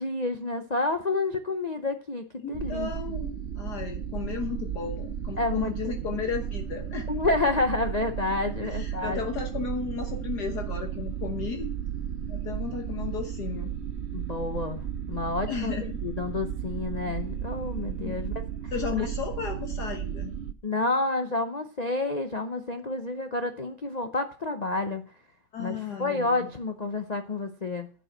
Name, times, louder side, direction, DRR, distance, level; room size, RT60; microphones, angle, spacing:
voice 1, 0.0-2.9 5.4-5.7 7.1-9.2 14.1-14.8 15.1-15.7 16.0-18.7 20.6-25.0 25.6-27.9, left 2 dB, 75° left, 7 dB, 0.3 m, -29 dB
voice 2, 2.4-7.1 8.4-11.7 12.3-13.7 15.5-16.0 17.0-17.1 18.0-18.2 18.7-20.3 25.5-26.5, left 6 dB, 60° left, 5 dB, 1.7 m, -34 dB
sound 1, 2.5-20.5, right 9 dB, 80° right, 0.5 m, -34 dB
10.5 x 5.4 x 7.8 m, 0.41 s
omnidirectional pair, 2.1 m